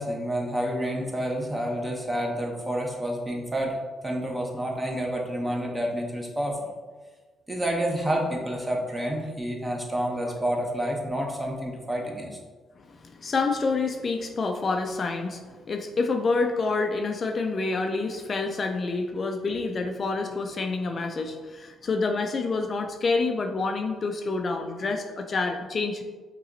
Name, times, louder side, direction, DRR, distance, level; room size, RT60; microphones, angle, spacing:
voice 1, 0.0-3.8 4.0-6.7 7.5-12.3, equal, 15° right, 0 dB, 0.9 m, -29 dB
voice 2, 12.8-26.0, left 3 dB, 45° left, 4 dB, 0.4 m, -28 dB
5.6 x 3.0 x 2.7 m, 1.3 s
cardioid pair, 90°, 0 cm